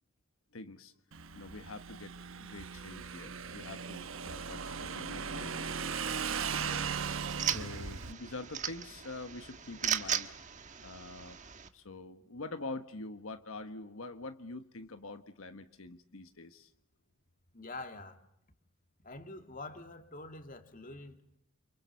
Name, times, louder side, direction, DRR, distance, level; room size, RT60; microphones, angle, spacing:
voice 1, 0.5-0.9 1.3-5.6 6.5-6.9 7.4-10.3 10.8-11.4 11.7-16.7, left 2 dB, 90° left, 1.4 m, -45 dB
Motorcycle / Engine, 1.1-8.1, right 6 dB, 75° right, 1.1 m, -38 dB
sound 1, 6.3-11.7, right 8 dB, 35° right, 1.4 m, -38 dB
voice 2, 17.5-18.2 19.0-21.4, left 2 dB, 40° left, 2.7 m, -46 dB
29.5 x 25.5 x 7.1 m
head